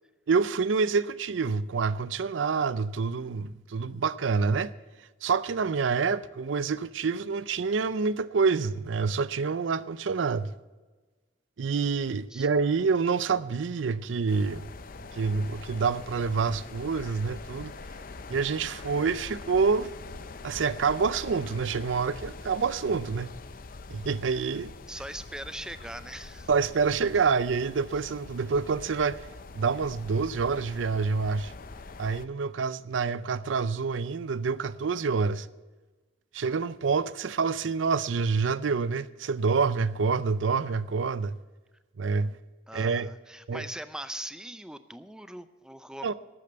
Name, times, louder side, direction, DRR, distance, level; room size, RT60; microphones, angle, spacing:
voice 1, 0.3-4.7 5.2-10.5 11.6-14.7 15.1-17.7 18.3-19.9 20.4-23.3 23.9-24.7 26.5-29.3 29.5-31.5 32.0-35.5 36.3-41.4 42.0-42.4 42.7-43.1 43.5-43.6 46.0-46.1, right 5 dB, 90° right, 0.5 m, -27 dB
sound 1, 14.3-32.3, left 3 dB, 50° left, 0.6 m, -44 dB
voice 2, 24.9-26.5 42.7-46.1, right 1 dB, 5° right, 0.5 m, -41 dB
13.0 x 8.5 x 6.6 m
head